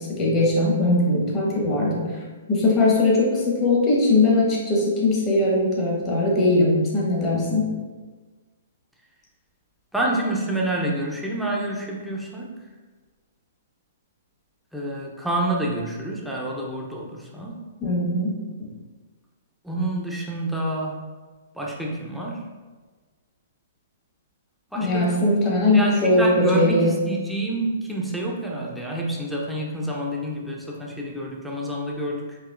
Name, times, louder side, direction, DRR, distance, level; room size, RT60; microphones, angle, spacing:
voice 1, 0.0-2.1 2.5-7.7 17.8-18.7 24.7-27.0, left 2 dB, 25° left, -4 dB, 1.1 m, -20 dB
voice 2, 9.9-12.5 14.7-17.6 19.6-21.0 21.5-22.4 24.7-25.2 25.6-32.4, right 1 dB, ahead, -3 dB, 0.7 m, -28 dB
4.8 x 2.9 x 2.5 m, 1.4 s
figure-of-eight pair, 120°, 0 cm